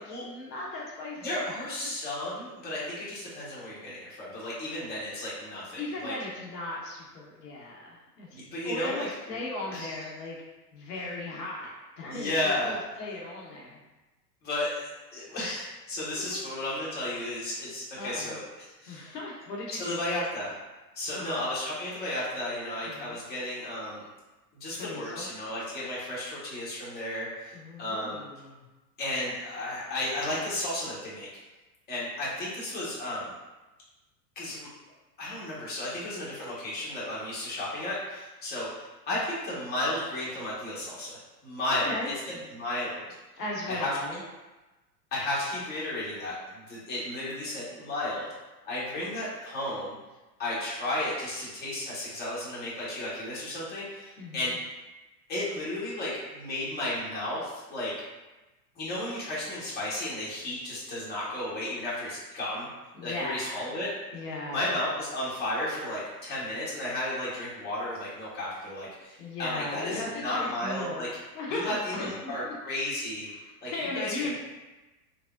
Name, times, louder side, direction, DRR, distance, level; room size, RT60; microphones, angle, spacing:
voice 1, 0.0-1.2 1.8-1.9 5.8-10.4 10.7-13.8 16.1-16.4 18.0-18.4 18.9-20.1 21.1-21.5 22.8-23.2 24.7-25.3 27.5-28.6 41.7-42.1 43.4-44.2 54.2-54.5 62.9-63.7 64.1-64.7 69.2-71.0 71.3-72.1 72.4-72.5 73.4-74.3, left 2 dB, 75° left, -3 dB, 0.8 m, -37 dB
voice 2, 1.2-6.1 8.3-9.4 9.7-10.0 12.0-12.8 14.4-19.1 19.8-20.5 20.9-24.0 24.5-28.2 29.0-31.3 31.9-33.3 34.4-34.7 35.2-42.1 42.5-43.0 43.7-43.9 45.1-48.3 48.6-49.9 50.4-54.5 55.3-57.9 58.8-62.7 63.0-63.9 64.5-71.1 71.5-73.3 73.6-74.3, left 1 dB, 20° left, -7 dB, 1.0 m, -33 dB
3.4 x 2.0 x 2.3 m, 1.1 s
hypercardioid pair, 100°, 49 cm